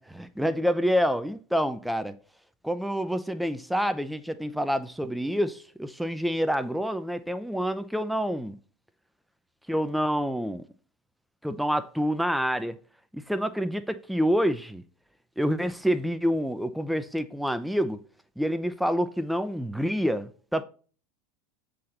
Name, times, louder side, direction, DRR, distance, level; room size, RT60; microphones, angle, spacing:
voice 1, 0.0-2.2 2.6-8.5 9.7-10.6 11.4-12.8 13.1-14.8 15.4-18.0 18.4-20.6, equal, ahead, 0.5 m, -27 dB
7.4 x 4.0 x 4.2 m
hypercardioid pair, 80°, 0 cm